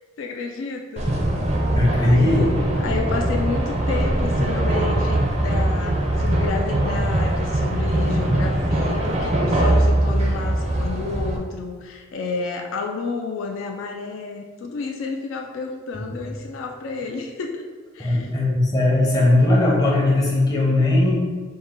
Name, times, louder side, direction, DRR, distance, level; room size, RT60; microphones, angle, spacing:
voice 1, 0.2-1.1 2.0-2.6 2.8-18.3, left 4 dB, 70° left, 3 dB, 0.3 m, -31 dB
sound 1, 1.0-11.4, right 1 dB, 30° right, 0.4 m, -21 dB
voice 2, 1.7-2.5 15.9-16.2 18.0-21.2, left 2 dB, 20° left, -4 dB, 0.7 m, -19 dB
4.2 x 2.1 x 3.6 m, 1.5 s
head